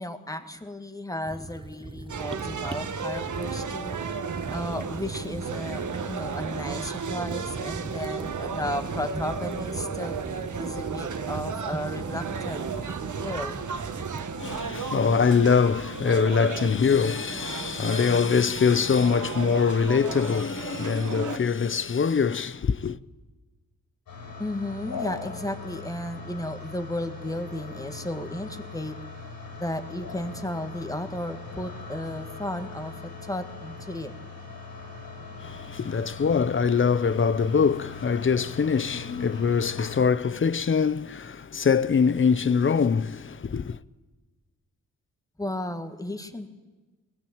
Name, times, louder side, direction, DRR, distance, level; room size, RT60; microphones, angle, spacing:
voice 1, 0.0-4.0 4.5-10.2 10.6-12.7 13.2-13.6 24.4-29.0 29.5-34.1 45.4-46.5, left 1 dB, 10° left, 1.9 m, -34 dB
sound 1, 1.2-14.2, right 3 dB, 15° right, 0.7 m, -42 dB
sound 2, 2.1-21.4, right 5 dB, 60° right, 1.6 m, -34 dB
voice 2, 14.4-23.0 35.4-43.8, left 6 dB, 35° left, 0.7 m, -23 dB
sound 3, 24.1-40.0, left 4 dB, 90° left, 7.7 m, -41 dB
21.5 x 20.0 x 8.8 m
wide cardioid pair, 110°, 34 cm